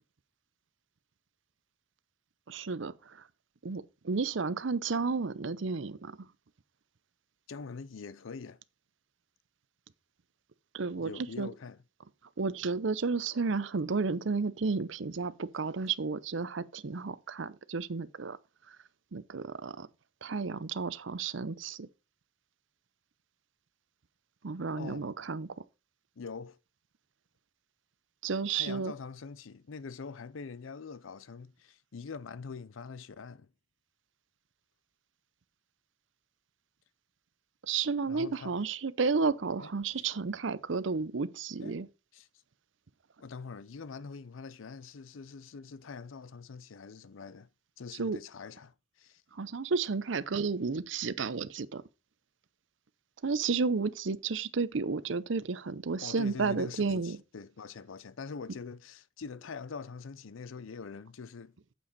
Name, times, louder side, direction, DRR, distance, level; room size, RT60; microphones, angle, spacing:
voice 1, 2.5-3.2 3.6-6.3 10.7-11.1 11.4-11.5 12.4-18.4 19.1-19.9 20.2-21.9 24.4-25.6 28.2-28.9 37.6-41.9 48.0-48.2 49.3-51.8 53.2-57.2, right 4 dB, 70° right, 0.6 m, -32 dB
voice 2, 7.5-8.6 11.0-11.8 24.7-25.1 26.2-26.6 28.5-33.5 38.0-38.6 39.6-39.7 40.0-40.1 41.6-41.8 42.1-42.3 43.2-47.5 47.8-49.2 56.0-61.5, left 5 dB, 85° left, 0.5 m, -44 dB
8.6 x 7.0 x 4.0 m
head